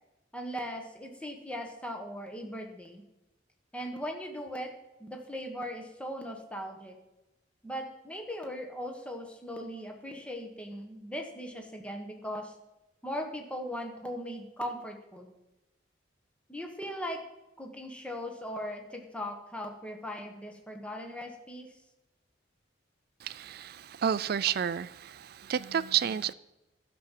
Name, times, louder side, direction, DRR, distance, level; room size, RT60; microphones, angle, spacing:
voice 1, 0.3-3.0 3.7-4.7 5.0-7.0 7.6-12.5 13.0-15.3 16.5-17.2 17.6-21.7, equal, 5° left, 1.3 m, -39 dB
voice 2, 23.2-26.3, right 8 dB, 50° right, 0.4 m, -30 dB
11.5 x 6.1 x 7.5 m
head